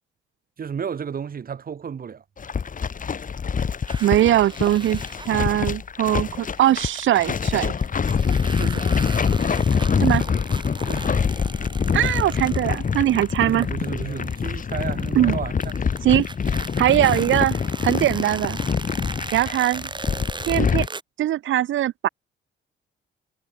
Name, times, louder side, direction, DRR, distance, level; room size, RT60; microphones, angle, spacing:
voice 1, 0.6-2.2 8.5-8.9 10.9-11.2 13.4-15.5, right 7 dB, 45° right, 4.2 m, -32 dB
sound 1, 2.4-20.9, left 6 dB, 40° left, 4.4 m, -25 dB
sound 2, 3.9-5.7 6.6-7.3 7.8-15.3 15.6-21.0, right 3 dB, 25° right, 3.9 m, -38 dB
voice 2, 4.0-7.7 10.0-10.2 11.9-13.7 15.1-15.4 16.0-16.3 16.8-18.6 19.3-19.9 20.5-20.9 21.2-22.1, right 13 dB, 75° right, 2.3 m, -21 dB
cardioid pair, 90°, 20 cm